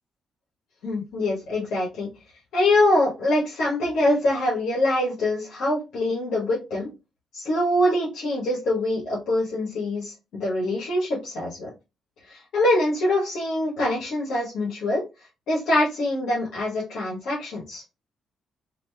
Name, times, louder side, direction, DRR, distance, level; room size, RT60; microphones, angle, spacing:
voice 1, 0.8-2.1 2.5-6.9 7.3-11.7 12.2-15.0 15.5-17.8, left 1 dB, 80° left, -4 dB, 1.2 m, -24 dB
2.9 x 2.6 x 3.3 m, 0.26 s
cardioid pair, 85°, 0 cm